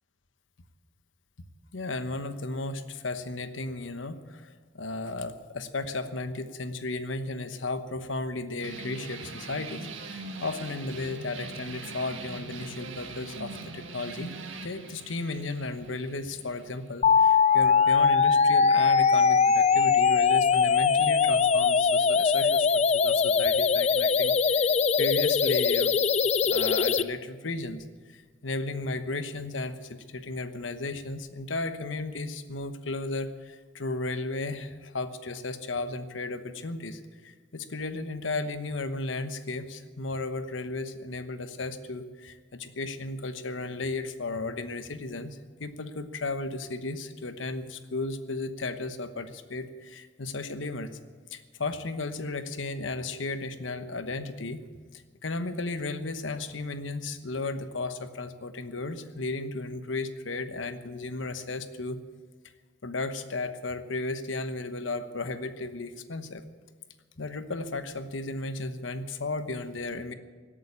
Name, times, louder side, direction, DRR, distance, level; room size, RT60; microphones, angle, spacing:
voice 1, 1.7-14.3 14.6-22.7 22.9-24.7 25.0-25.9 26.4-51.0 51.3-54.6 54.9-62.0 62.8-66.4 67.2-70.1, left 2 dB, 80° left, 10 dB, 1.1 m, -34 dB
sound 1, 8.6-17.7, right 3 dB, 90° right, 1.8 m, -42 dB
sound 2, 17.0-27.0, left 5 dB, 35° left, 0.4 m, -22 dB
17.5 x 8.9 x 8.6 m, 1.5 s
head